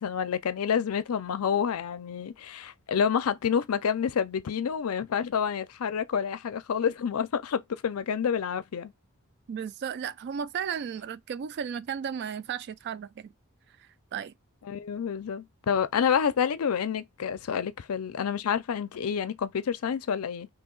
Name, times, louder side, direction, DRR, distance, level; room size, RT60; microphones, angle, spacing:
voice 1, 0.0-8.9 14.6-20.5, left 7 dB, 85° left, 0.4 m, -28 dB
voice 2, 9.5-13.3 14.1-14.3, right 7 dB, 50° right, 0.3 m, -34 dB
2.8 x 2.8 x 3.8 m
head